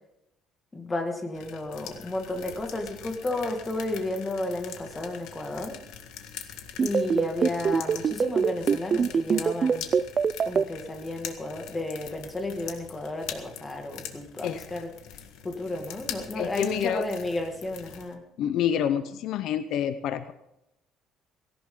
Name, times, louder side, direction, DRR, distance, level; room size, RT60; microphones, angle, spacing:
voice 1, 0.7-5.8 6.8-9.9 10.5-14.9 15.4-18.2, left 2 dB, 15° left, 4 dB, 2.0 m, -32 dB
sound 1, 1.3-18.1, left 9 dB, 85° left, 1.7 m, -43 dB
sound 2, 6.8-10.6, right 6 dB, 30° right, 0.4 m, -22 dB
voice 2, 16.4-17.0 18.4-20.3, left 9 dB, 60° left, 11 dB, 0.7 m, -27 dB
18.0 x 17.5 x 3.8 m, 0.87 s
cardioid pair, 170°, 0 cm